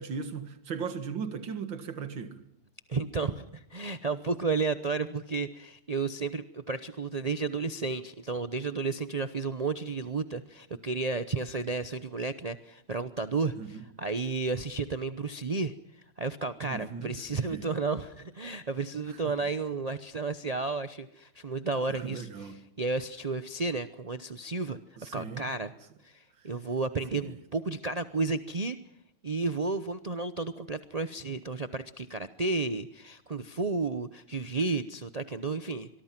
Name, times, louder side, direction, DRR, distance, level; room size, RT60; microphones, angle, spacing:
voice 1, 0.0-2.4 13.6-13.8 16.6-17.7 19.1-19.5 21.9-22.6 25.0-25.5 26.4-26.5 27.1-27.4, right 6 dB, 75° right, 2.5 m, -38 dB
voice 2, 2.9-15.7 16.2-22.3 22.8-25.7 26.0-28.8 29.2-35.9, right 3 dB, 55° right, 0.4 m, -32 dB
24.5 x 23.0 x 5.9 m
omnidirectional pair, 2.1 m